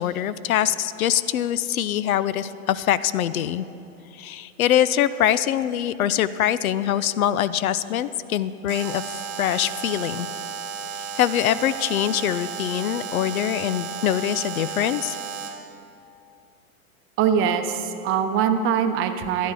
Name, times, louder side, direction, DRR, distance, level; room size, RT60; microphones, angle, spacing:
voice 1, 0.0-3.6 4.1-10.3 11.2-15.2, left 11 dB, 75° left, 16 dB, 0.6 m, -23 dB
Alarm, 8.7-15.7, right 6 dB, 55° right, 1.2 m, -34 dB
voice 2, 17.2-19.5, right 8 dB, 30° right, 7 dB, 0.7 m, -22 dB
13.0 x 10.0 x 4.7 m, 2.7 s
hypercardioid pair, 115°, 42 cm